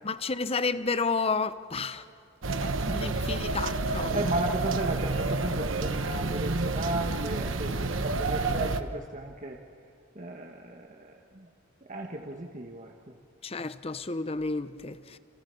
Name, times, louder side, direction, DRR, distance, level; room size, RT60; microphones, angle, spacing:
voice 1, 0.0-2.0 2.9-4.3 13.4-15.2, left 4 dB, 30° left, 0.8 m, -31 dB
sound 1, 2.4-8.8, right 3 dB, 70° right, 1.2 m, -29 dB
voice 2, 2.6-3.2 4.1-9.6 10.1-11.5 11.9-12.9, right 1 dB, 40° right, 1.5 m, -35 dB
29.0 x 27.5 x 7.0 m
head